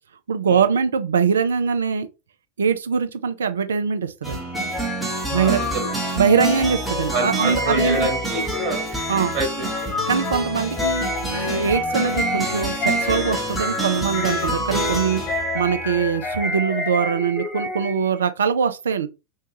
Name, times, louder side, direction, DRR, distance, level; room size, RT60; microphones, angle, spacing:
voice 1, 0.3-2.1 2.6-4.4 5.3-5.6 6.2-8.1 9.1-9.3 10.1-19.1, right 6 dB, 65° right, 0.4 m, -22 dB
sound 1, 4.2-16.5, right 2 dB, 5° right, 0.9 m, -28 dB
sound 2, 4.5-18.2, left 2 dB, 25° left, 0.6 m, -29 dB
voice 2, 5.3-5.9 7.1-8.9 9.3-9.9, right 2 dB, 35° right, 1.2 m, -27 dB
2.6 x 2.3 x 3.0 m
figure-of-eight pair, 90°, 0 cm